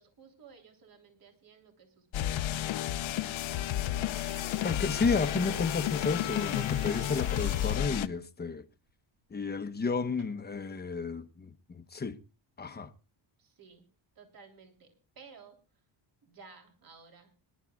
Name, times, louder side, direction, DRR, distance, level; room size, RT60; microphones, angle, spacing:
voice 1, 0.0-4.0 13.4-13.9 14.1-15.8 16.2-17.3, right 5 dB, 45° right, 3.4 m, -56 dB
sound 1, 2.1-8.1, left 12 dB, 70° left, 0.9 m, -32 dB
sound 2, 4.1-7.8 8.5-8.9 10.2-10.3, right 6 dB, 80° right, 3.3 m, -51 dB
voice 2, 4.6-8.6 9.3-12.2 12.6-12.9, left 4 dB, 20° left, 1.0 m, -32 dB
25.5 x 11.5 x 2.4 m
cardioid pair, 115°, 49 cm